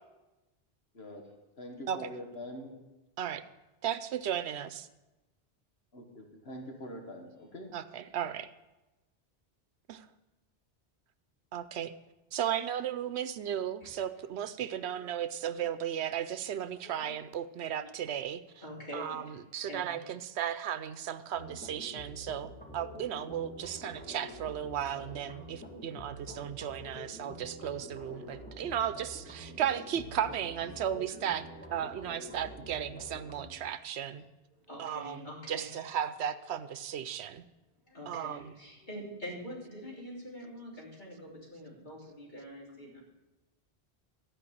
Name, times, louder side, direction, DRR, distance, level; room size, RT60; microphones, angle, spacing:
voice 1, 1.6-2.8 5.9-7.7, left 1 dB, 70° left, 2 dB, 1.8 m, -44 dB
voice 2, 3.8-4.9 7.7-8.5 9.9-10.1 11.5-11.9 12.3-18.4 18.9-31.4 31.7-34.2 34.8-37.4 38.1-38.5, right 9 dB, 85° right, 13 dB, 0.9 m, -35 dB
voice 3, 16.8-17.1 17.8-17.9 18.6-19.3 19.7-20.0 21.7-22.3 25.6-25.9 28.1-28.6 30.4-30.7 33.4-33.5 34.1-34.2 34.5-35.9 37.9-43.0, equal, 45° left, -5 dB, 3.6 m, -46 dB
sound 1, 21.3-33.5, equal, 10° left, 2.1 m, -47 dB
13.5 x 5.3 x 8.5 m, 1.0 s
omnidirectional pair, 1.1 m